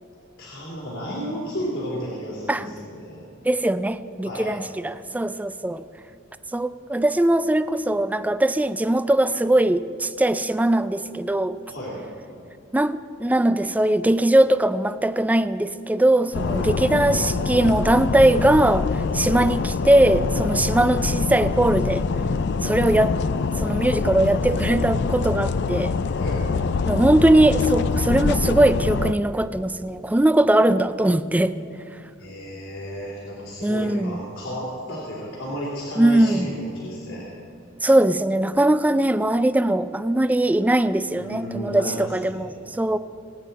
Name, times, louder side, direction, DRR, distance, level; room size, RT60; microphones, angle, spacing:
voice 1, 0.4-3.2 4.2-4.5 11.7-12.0 16.4-16.7 26.1-26.4 32.2-37.2 41.1-42.6, equal, 80° left, -6 dB, 3.1 m, -33 dB
voice 2, 3.4-5.8 6.5-11.6 12.7-18.9 19.1-22.0 22.6-23.1 23.6-25.9 26.9-31.5 33.6-34.2 36.0-36.5 37.8-42.5 42.8-43.0, right 1 dB, 10° right, 13 dB, 0.3 m, -20 dB
sound 1, 16.3-29.1, left 4 dB, 60° left, 0.4 m, -24 dB
22.0 x 9.3 x 4.2 m, 2.6 s
head